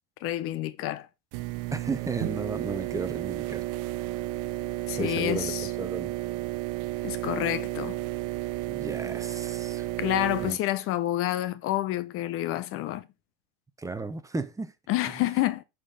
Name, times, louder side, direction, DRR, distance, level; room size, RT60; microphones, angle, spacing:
voice 1, 0.2-1.1 4.9-5.7 7.0-8.0 10.0-13.1 14.9-15.6, left 14 dB, 45° left, 0.7 m, -28 dB
sound 1, 1.3-10.5, right 18 dB, 55° right, 0.6 m, -32 dB
voice 2, 1.7-3.6 5.0-6.1 8.7-9.9 10.4-10.6 13.8-14.7 15.1-15.2, right 3 dB, 10° right, 0.9 m, -34 dB
11.0 x 4.5 x 3.7 m
supercardioid pair, 115°, 30 cm